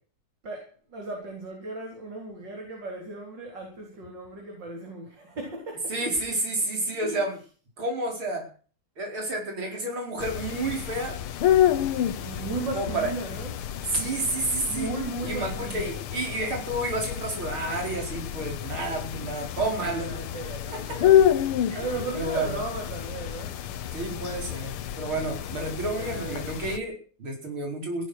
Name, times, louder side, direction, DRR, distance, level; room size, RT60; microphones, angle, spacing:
voice 1, 0.4-5.9 6.7-7.2 12.2-13.5 14.7-15.9 19.8-21.3 21.7-23.6 26.0-26.5, right 2 dB, 55° right, 0 dB, 4.8 m, -36 dB
voice 2, 5.9-7.4 7.8-8.5 9.0-11.2 12.7-13.1 13.9-14.9 15.2-20.2 20.7-21.0 21.7-21.8 22.1-22.6 23.9-28.1, right 2 dB, 75° right, 2 dB, 5.5 m, -30 dB
sound 1, 10.2-26.8, left 11 dB, 90° left, 1.9 m, -28 dB
17.0 x 11.5 x 6.4 m, 0.41 s
omnidirectional pair, 2.3 m